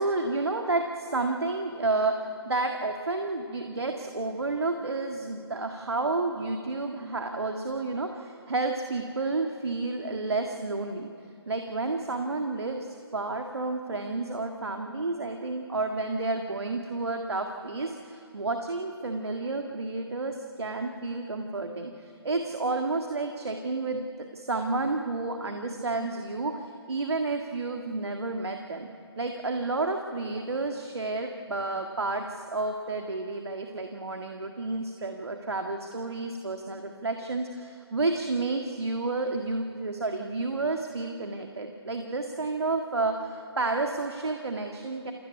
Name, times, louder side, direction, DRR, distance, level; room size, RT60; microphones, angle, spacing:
voice 1, 0.0-2.1 2.5-11.1 11.5-28.9 29.2-45.1, right 3 dB, 70° right, 4 dB, 1.8 m, -31 dB
28.5 x 14.0 x 9.8 m, 2.4 s
figure-of-eight pair, 135°, 14 cm